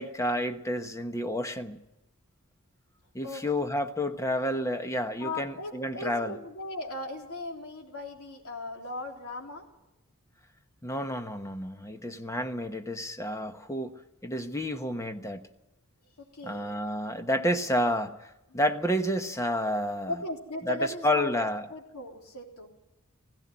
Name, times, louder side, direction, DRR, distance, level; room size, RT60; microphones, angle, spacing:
voice 1, 0.0-1.8 3.1-6.4 10.8-14.0 14.2-15.4 16.4-20.1 20.6-21.6, equal, 15° left, 1.1 m, -30 dB
voice 2, 5.2-9.7 16.2-16.7 17.5-17.6 20.1-22.7, left 1 dB, 80° left, 3.6 m, -37 dB
17.0 x 16.5 x 9.6 m
head